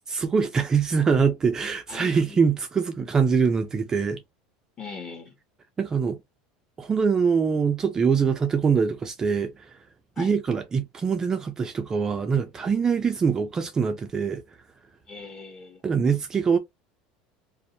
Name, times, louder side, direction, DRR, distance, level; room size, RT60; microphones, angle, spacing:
voice 1, 0.1-4.2 5.8-6.2 6.8-9.8 10.2-14.4 15.8-16.6, right 6 dB, 20° right, 0.3 m, -23 dB
voice 2, 1.9-2.5 4.8-5.4 10.2-10.3 15.1-15.8, left 4 dB, 30° left, 1.0 m, -40 dB
2.5 x 2.0 x 2.6 m
supercardioid pair, 135°, 3 cm